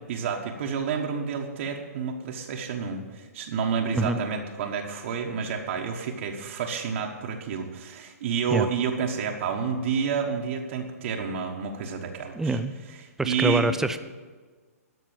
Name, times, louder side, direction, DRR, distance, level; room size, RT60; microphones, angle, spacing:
voice 1, 0.1-12.6 12.9-13.7, right 6 dB, 50° right, 1 dB, 1.4 m, -29 dB
voice 2, 12.4-12.7 13.2-14.0, right 2 dB, 5° right, 10 dB, 0.5 m, -25 dB
12.5 x 6.0 x 8.8 m, 1.4 s
hypercardioid pair, 130°, 9 cm